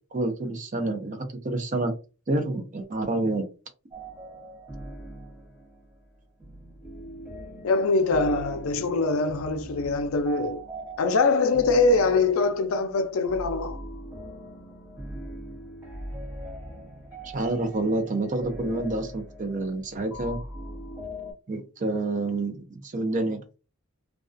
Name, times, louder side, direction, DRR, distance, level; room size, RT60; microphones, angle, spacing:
voice 1, 0.0-1.9 2.3-3.5 17.2-20.4 21.5-23.4, right 2 dB, 35° right, 0.5 m, -28 dB
sound 1, 3.9-21.3, right 1 dB, 10° right, 0.8 m, -41 dB
voice 2, 7.6-10.6 11.0-13.8, left 3 dB, 70° left, 0.4 m, -23 dB
2.3 x 2.2 x 2.4 m
head